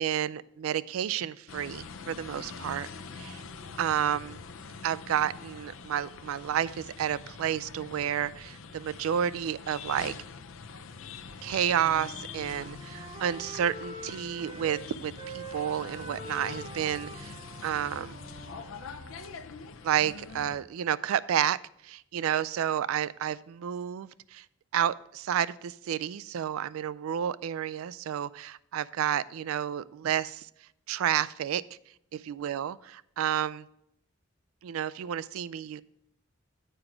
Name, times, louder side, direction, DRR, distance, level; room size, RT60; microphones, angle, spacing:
voice 1, 0.0-2.9 3.2-3.4 3.8-4.4 4.8-10.1 11.4-17.4 17.6-18.2 19.8-21.6 21.8-24.4 24.7-30.5 30.9-31.6 32.1-32.8 33.2-33.7 34.6-35.8, right 9 dB, 90° right, 19 dB, 0.3 m, -30 dB
sound 1, 1.5-20.6, left 5 dB, 75° left, 0.6 m, -44 dB
Wind instrument woodwind instrument, 11.3-14.8 15.1-19.4, right 2 dB, 30° right, 0.8 m, -45 dB
7.8 x 5.0 x 5.8 m, 0.76 s
head